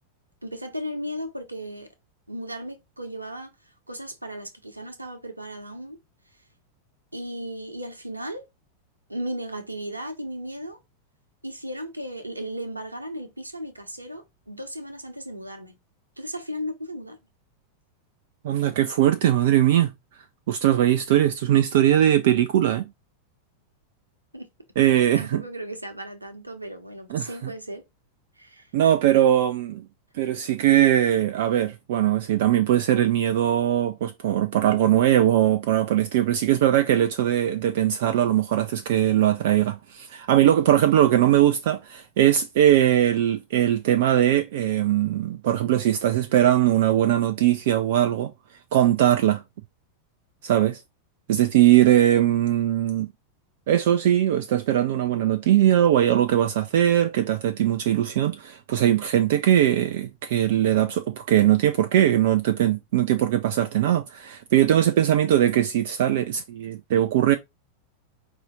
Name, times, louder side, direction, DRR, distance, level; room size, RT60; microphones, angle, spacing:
voice 1, 0.4-1.9 2.3-3.5 3.9-6.0 7.1-8.4 9.1-10.8 11.4-15.7 16.2-17.2 24.3-24.5 25.1-27.8 28.4-28.7, equal, 85° right, 0.9 m, -35 dB
voice 2, 18.4-19.9 20.5-22.8 24.8-25.4 27.1-27.5 28.7-29.8 30.1-48.3 48.7-49.4 50.4-50.8 51.3-53.1 53.7-67.4, right 11 dB, 55° right, 0.4 m, -20 dB
4.9 x 2.8 x 3.7 m
figure-of-eight pair, 90°, 0 cm